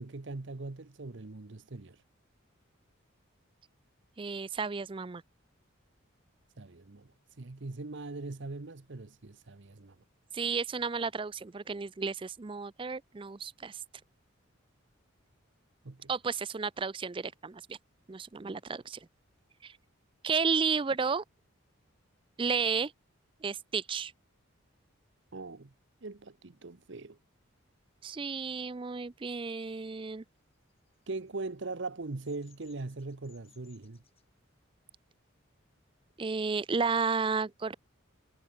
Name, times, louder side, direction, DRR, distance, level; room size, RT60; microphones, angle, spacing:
voice 1, 0.0-2.0 6.6-7.1 7.4-10.0 15.8-16.1 25.3-25.7 26.0-27.2 31.1-34.0, right 3 dB, 55° right, 0.9 m, -41 dB
voice 2, 4.2-5.2 10.3-13.8 16.1-17.8 18.1-19.1 19.6-19.8 20.2-21.2 22.4-22.9 23.4-24.1 28.0-30.2 36.2-37.7, right 5 dB, 25° right, 0.4 m, -32 dB
Bird vocalization bird call bird song, 30.5-34.2, left 9 dB, 30° left, 6.5 m, -66 dB
head